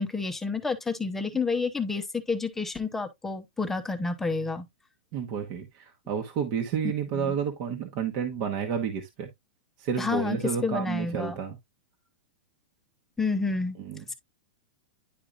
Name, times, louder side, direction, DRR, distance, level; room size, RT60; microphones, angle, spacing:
voice 1, 0.0-4.7 6.8-7.3 10.0-10.4 10.6-11.4 13.2-13.8 14.1-14.2, left 4 dB, 5° left, 0.8 m, -29 dB
voice 2, 5.1-9.3 9.8-11.6 13.8-14.0, right 7 dB, 40° right, 1.1 m, -30 dB
10.0 x 4.6 x 2.5 m
supercardioid pair, 165°, 6 cm